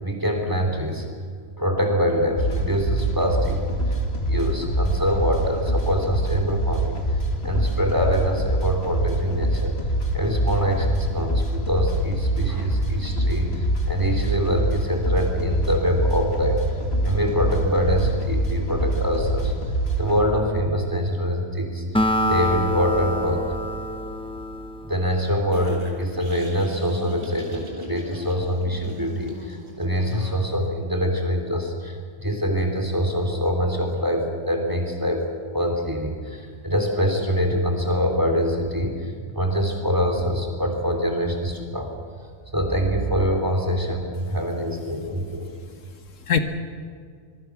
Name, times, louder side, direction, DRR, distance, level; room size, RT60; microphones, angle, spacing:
voice 1, 0.0-1.1 1.6-3.6 3.9-4.0 4.2-7.0 7.4-9.7 10.1-16.6 17.0-19.5 20.0-21.8 22.3-23.5 24.8-35.3 35.5-41.9 42.5-45.5, equal, 15° right, 3 dB, 3.1 m, -24 dB
sound 1, 2.4-20.2, right 1 dB, 55° left, 2.4 m, -25 dB
Acoustic guitar, 21.9-25.5, left 1 dB, 5° left, 0.9 m, -26 dB
sound 2, 25.5-30.5, equal, 85° right, 4.2 m, -41 dB
voice 2, 45.4-46.4, left 7 dB, 80° left, 7 dB, 1.7 m, -27 dB
24.5 x 23.5 x 6.1 m, 2.1 s
omnidirectional pair, 1.3 m